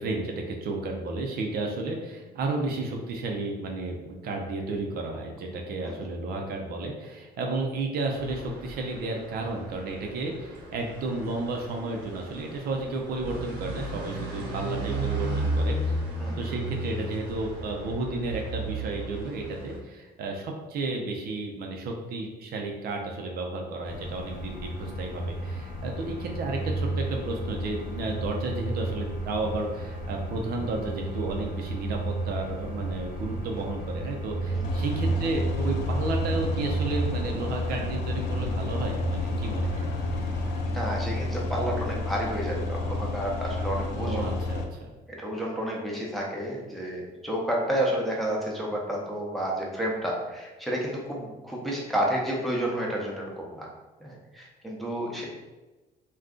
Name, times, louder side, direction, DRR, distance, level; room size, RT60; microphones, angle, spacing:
voice 1, 0.0-15.8 16.4-39.9 43.9-44.9, right 2 dB, 65° right, 1 dB, 0.5 m, -32 dB
sound 1, 8.1-19.8, right 1 dB, 85° right, 0.9 m, -34 dB
sound 2, 23.8-40.6, right 2 dB, 60° left, 0.8 m, -33 dB
sound 3, 34.6-44.6, left 2 dB, 80° left, 0.4 m, -30 dB
voice 2, 40.7-44.3 45.1-53.7 54.0-55.3, right 1 dB, ahead, -3 dB, 0.7 m, -30 dB
2.5 x 2.3 x 3.6 m, 1.1 s
cardioid pair, 110°, 17 cm